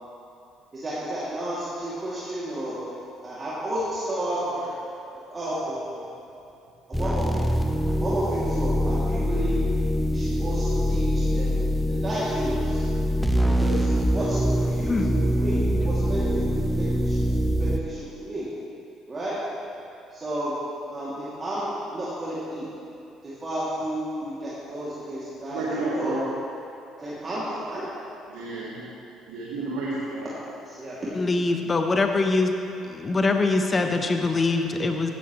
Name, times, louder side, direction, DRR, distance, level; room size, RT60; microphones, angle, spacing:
voice 1, 0.7-2.8 3.2-4.7 5.1-6.0 6.9-7.6 8.0-9.6 10.1-11.6 11.9-12.9 13.4-17.3 17.6-18.5 19.1-19.4 20.1-20.6 20.9-22.7 23.2-26.2 27.0-27.9 30.6-31.1, right 1 dB, 35° right, -10 dB, 2.7 m, -32 dB
sound 1, 6.9-17.8, equal, ahead, 1.0 m, -24 dB
voice 2, 25.5-26.2 28.3-28.9 29.3-30.3, right 3 dB, 70° right, -6 dB, 1.6 m, -31 dB
voice 3, 31.1-32.5 32.8-35.1, left 3 dB, 30° left, 5 dB, 1.1 m, -23 dB
15.5 x 11.0 x 3.2 m, 2.7 s
hypercardioid pair, 55°, 0 cm